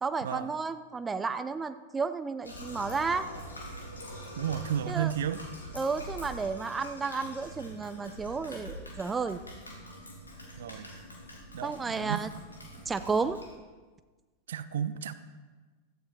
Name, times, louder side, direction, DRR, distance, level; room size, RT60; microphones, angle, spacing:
voice 1, 0.0-3.3 4.9-5.1 5.7-9.4 11.6-12.3 12.9-13.4, right 4 dB, 15° right, 11 dB, 0.6 m, -32 dB
sound 1, 2.4-13.5, equal, 75° left, 3.0 m, -44 dB
voice 2, 4.3-5.4 10.6-10.9 11.5-12.3 14.5-15.1, right 9 dB, 60° right, 13 dB, 0.8 m, -33 dB
16.5 x 14.0 x 4.2 m, 1.3 s
figure-of-eight pair, 90°, 0 cm